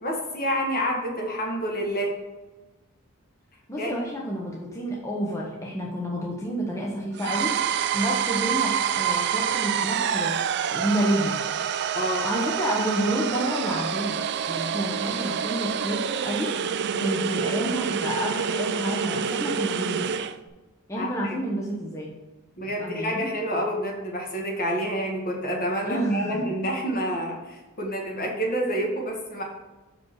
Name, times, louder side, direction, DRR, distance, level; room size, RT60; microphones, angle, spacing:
voice 1, 0.0-2.1 3.8-4.0 11.9-12.3 16.9-17.2 21.0-21.3 22.6-29.4, equal, 40° left, 0 dB, 1.6 m, -28 dB
voice 2, 3.7-11.4 12.2-14.2 14.5-16.6 17.0-20.1 20.9-22.1 22.8-23.3 25.8-26.5, equal, 15° left, -3 dB, 0.9 m, -29 dB
sound 1, 7.2-20.4, right 8 dB, 50° right, 0.4 m, -27 dB
6.2 x 5.1 x 4.7 m, 1.2 s
head